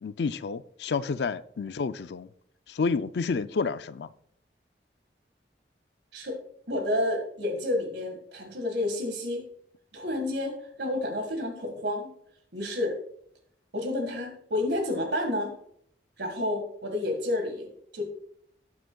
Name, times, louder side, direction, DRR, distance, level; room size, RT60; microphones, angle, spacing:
voice 1, 0.0-2.3 2.7-4.1, left 4 dB, 75° left, 0.4 m, -30 dB
voice 2, 6.7-9.4 9.9-12.1 12.5-13.0 13.7-15.5 16.2-17.7 17.9-18.0, left 1 dB, 85° right, 1.7 m, -30 dB
18.5 x 6.3 x 2.3 m
head